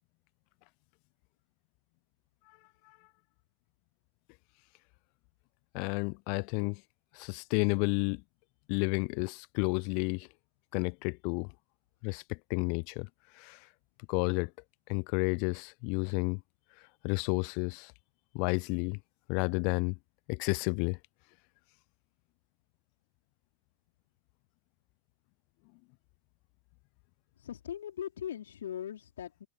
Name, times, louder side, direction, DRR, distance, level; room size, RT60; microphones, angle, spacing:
voice 1, 5.7-6.8 7.1-8.2 8.7-10.3 10.7-11.5 12.0-13.1 13.3-13.7 14.1-14.5 14.9-16.4 16.8-17.9 18.3-19.0 19.3-20.0 20.3-21.0, left 39 dB, 45° left, 0.5 m, -31 dB
voice 2, 27.4-29.5, left 10 dB, 65° left, 4.4 m, -40 dB
figure-of-eight pair, 90°, 0 cm